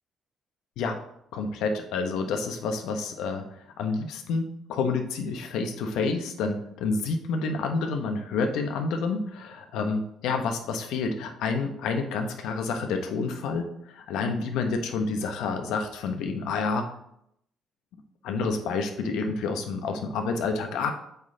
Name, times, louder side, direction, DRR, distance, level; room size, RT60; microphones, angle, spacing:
voice 1, 1.3-3.4 3.8-16.9 18.2-20.9, left 4 dB, 85° left, 6 dB, 0.8 m, -29 dB
8.0 x 3.3 x 3.7 m, 0.75 s
cardioid pair, 90°, 0 cm